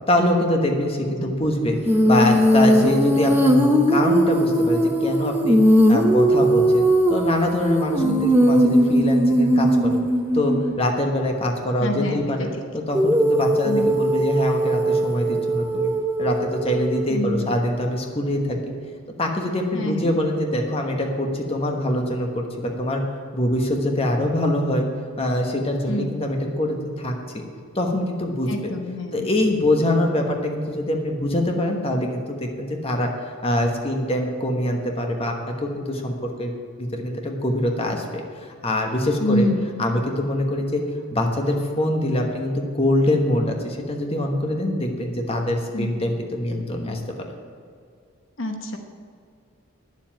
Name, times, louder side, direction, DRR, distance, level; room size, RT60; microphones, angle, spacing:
voice 1, 0.1-5.6 5.9-10.0 10.3-15.9 16.2-18.6 19.2-23.0 23.3-24.9 25.2-27.4 27.7-28.7 29.1-33.1 33.4-36.5 36.8-38.2 38.6-39.5 39.8-40.8 41.1-47.0, left 1 dB, 30° left, 2 dB, 1.2 m, -24 dB
Female singing, 1.8-10.7 12.9-17.1, equal, 10° right, 0.8 m, -19 dB
voice 2, 11.8-12.3 13.7-13.9 17.1-17.6 19.7-20.2 25.9-26.2 28.5-29.3 39.2-39.8 45.7-45.9 48.4-48.8, left 1 dB, 65° left, 4 dB, 1.0 m, -27 dB
9.8 x 7.4 x 8.8 m, 2.3 s
head